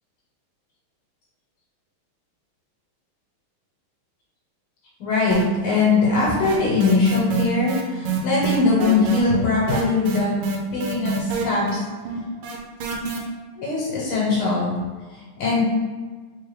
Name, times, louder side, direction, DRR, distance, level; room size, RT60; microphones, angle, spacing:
voice 1, 5.0-10.3 10.7-11.9 13.6-14.8 15.1-15.6, left 4 dB, 85° left, -6 dB, 1.8 m, -21 dB
sound 1, 5.3-5.8 6.1-13.2, right 5 dB, 80° right, 1.5 m, -26 dB
3.5 x 3.4 x 3.2 m, 1.4 s
omnidirectional pair, 2.3 m